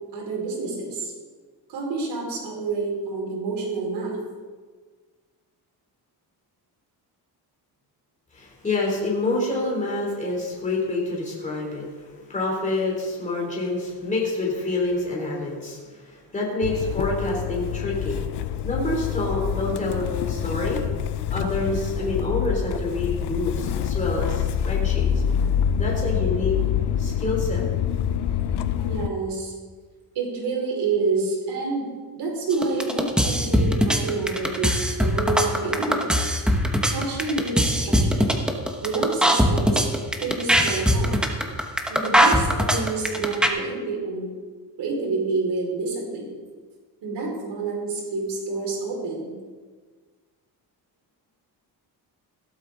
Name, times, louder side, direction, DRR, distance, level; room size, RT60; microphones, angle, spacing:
voice 1, 0.1-1.1 1.7-4.2 15.2-15.4 28.8-29.5 30.1-31.9 32.2-36.1 36.9-38.3 38.8-39.9 40.2-41.2 41.9-44.3 44.8-46.3 47.0-49.3, right 3 dB, 80° right, -2 dB, 4.9 m, -28 dB
voice 2, 8.3-18.2 18.6-20.8 21.3-25.1 25.7-26.5 27.0-27.6, left 2 dB, 20° left, -3 dB, 3.1 m, -27 dB
Motor vehicle (road) / Engine starting, 16.6-29.1, left 9 dB, 85° left, 0.8 m, -26 dB
sound 1, 32.5-43.5, equal, ahead, 1.1 m, -20 dB
16.0 x 13.0 x 3.8 m, 1.5 s
cardioid pair, 150°, 40 cm